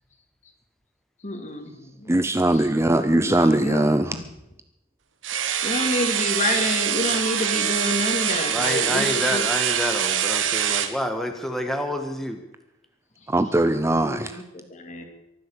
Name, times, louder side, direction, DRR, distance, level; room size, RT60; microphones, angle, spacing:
voice 1, 1.2-2.8 3.2-4.2 5.6-9.4 14.0-15.0, left 2 dB, 40° left, 5 dB, 2.4 m, -29 dB
voice 2, 2.1-4.1 13.3-14.3, right 1 dB, 15° right, 10 dB, 0.5 m, -20 dB
sound 1, 5.2-10.9, right 9 dB, 85° right, 1.2 m, -24 dB
voice 3, 8.5-12.4, equal, ahead, 5 dB, 1.3 m, -28 dB
23.0 x 7.7 x 6.9 m, 0.90 s
head